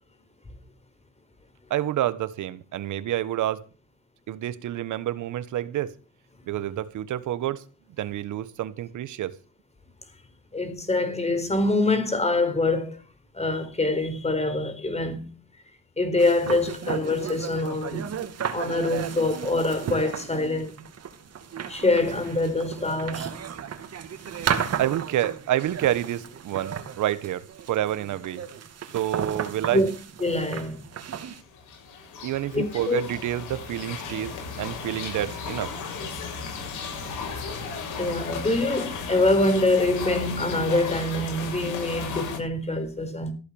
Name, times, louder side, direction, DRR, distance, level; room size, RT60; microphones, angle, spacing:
voice 1, 1.7-3.6 4.3-5.9 6.5-7.6 8.0-9.3 24.3-28.4 28.9-29.8 32.2-35.7, right 12 dB, 75° right, 1.3 m, -28 dB
voice 2, 10.5-13.0 13.3-15.3 16.0-18.1 18.5-20.7 21.7-23.3 29.7-29.9 30.2-30.9 32.5-33.0 38.0-43.3, left 2 dB, 20° left, 4.6 m, -25 dB
sound 1, 16.2-31.4, right 8 dB, 55° right, 2.5 m, -34 dB
sound 2, 31.3-42.4, left 5 dB, 80° left, 7.3 m, -35 dB
15.0 x 8.3 x 7.1 m
cardioid pair, 90°, 30 cm